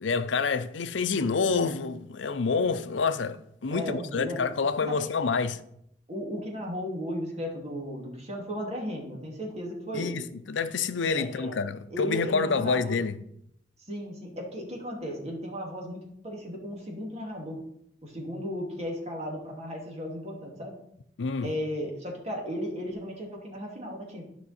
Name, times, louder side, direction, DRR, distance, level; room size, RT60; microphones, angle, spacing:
voice 1, 0.0-5.6 9.9-13.2 21.2-21.5, left 4 dB, 85° left, 0.6 m, -28 dB
voice 2, 3.7-4.4 4.9-5.1 6.1-10.2 11.2-11.6 11.9-13.0 13.8-17.6 18.0-20.8 21.4-24.2, equal, 35° right, 2.5 m, -35 dB
12.5 x 5.6 x 4.3 m
head